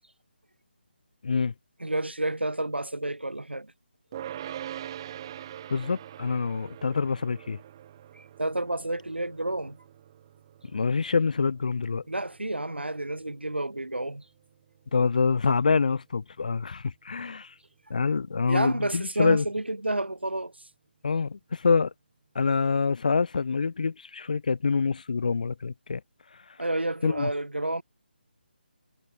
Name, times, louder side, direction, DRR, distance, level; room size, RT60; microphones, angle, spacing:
voice 1, 1.2-1.5 5.7-7.6 10.7-12.0 14.9-17.5 17.9-19.5 21.0-21.9 22.4-26.0 27.0-27.3, left 5 dB, 45° left, 0.4 m, -26 dB
voice 2, 1.8-3.7 8.2-9.8 12.1-14.2 18.5-20.5 26.6-27.8, right 1 dB, 75° right, 4.4 m, -30 dB
sound 1, 4.1-15.4, right 11 dB, 25° right, 1.2 m, -44 dB
figure-of-eight pair, 150°, 6 cm